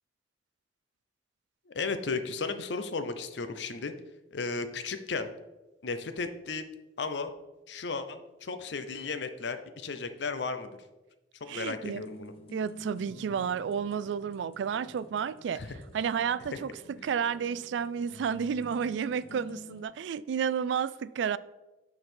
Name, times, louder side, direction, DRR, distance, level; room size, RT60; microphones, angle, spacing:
voice 1, 1.7-3.9 4.3-5.3 5.8-6.7 7.0-7.3 7.7-10.7 11.4-12.3 15.5-15.7, left 4 dB, 75° left, 0.6 m, -34 dB
voice 2, 11.5-12.0 12.5-15.6 15.9-16.7 17.0-21.4, right 7 dB, 85° right, 0.3 m, -31 dB
sound 1, 11.6-19.8, left 1 dB, 30° left, 0.8 m, -50 dB
9.4 x 4.0 x 4.3 m
head